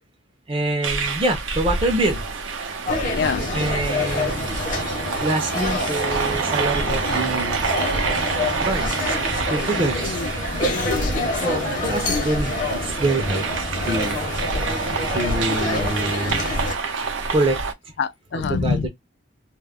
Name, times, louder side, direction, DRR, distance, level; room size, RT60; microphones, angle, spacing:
voice 1, 0.5-2.3 3.5-4.5 5.2-7.6 8.6-9.2 9.5-10.2 11.4-13.5 13.8-14.2 15.1-16.5 17.3-17.6 17.9-18.0 18.3-18.9, right 2 dB, 30° right, 0.5 m, -25 dB
sound 1, 0.8-17.7, right 4 dB, 80° right, 0.6 m, -27 dB
sound 2, 2.9-16.7, left 2 dB, 40° left, 0.7 m, -27 dB
voice 2, 3.1-3.6 10.0-10.3 10.7-11.1 18.0-18.9, left 5 dB, 60° left, 0.3 m, -26 dB
2.3 x 2.0 x 3.3 m
head